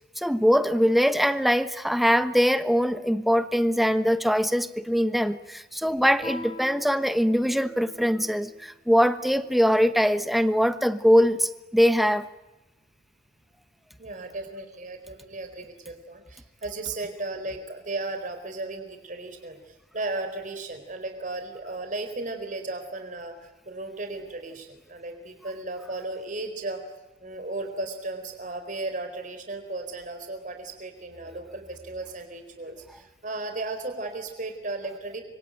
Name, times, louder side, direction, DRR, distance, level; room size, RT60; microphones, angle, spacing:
voice 1, 0.2-12.3, equal, ahead, 11 dB, 1.1 m, -22 dB
Guitar, 6.2-8.7, left 2 dB, 30° left, 4.9 m, -42 dB
voice 2, 14.0-26.8 27.2-35.2, right 2 dB, 50° right, 6 dB, 4.3 m, -35 dB
26.5 x 24.0 x 9.2 m, 1.0 s
head